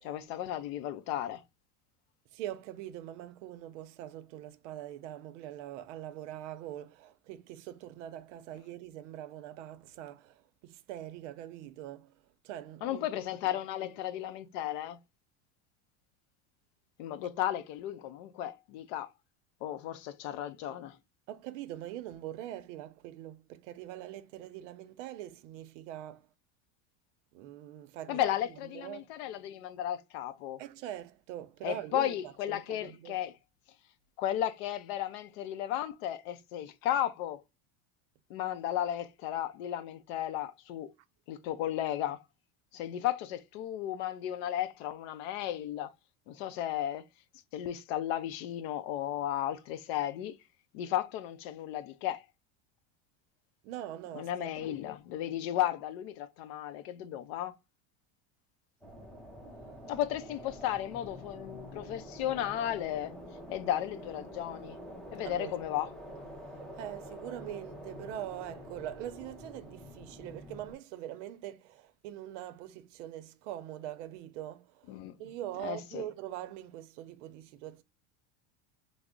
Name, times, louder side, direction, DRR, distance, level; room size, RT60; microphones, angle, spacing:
voice 1, 0.0-1.4 12.8-15.0 17.0-19.1 19.6-21.0 28.1-30.6 31.6-33.4 34.2-37.4 38.3-40.9 41.3-42.2 42.7-45.9 46.3-47.0 47.5-50.4 50.7-52.2 54.1-57.6 59.9-63.2 63.5-64.8 65.1-65.9 74.9-75.2 75.6-76.1, left 12 dB, 65° left, 0.5 m, -34 dB
voice 2, 2.3-12.2 12.4-13.1 21.3-26.3 27.3-28.2 28.7-29.1 30.6-32.2 32.5-33.2 53.6-54.5 65.2-65.5 66.8-74.8 75.2-77.8, right 12 dB, 85° right, 0.6 m, -43 dB
sound 1, 58.8-70.8, equal, ahead, 0.4 m, -47 dB
3.4 x 2.0 x 3.6 m
cardioid pair, 165°, 35 cm